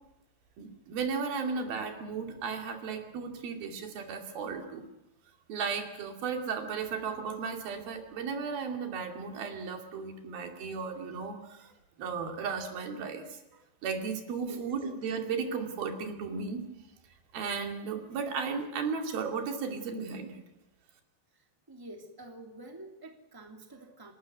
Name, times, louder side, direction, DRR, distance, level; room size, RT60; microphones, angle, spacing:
voice 1, 0.6-4.8 5.5-11.7 12.0-13.4 13.8-16.6 17.3-20.4, right 5 dB, 90° right, 4 dB, 4.4 m, -35 dB
voice 2, 14.3-14.7 21.3-21.4 21.7-24.1, right 1 dB, 5° right, 3 dB, 2.2 m, -48 dB
29.5 x 12.5 x 9.3 m, 0.93 s
omnidirectional pair, 4.1 m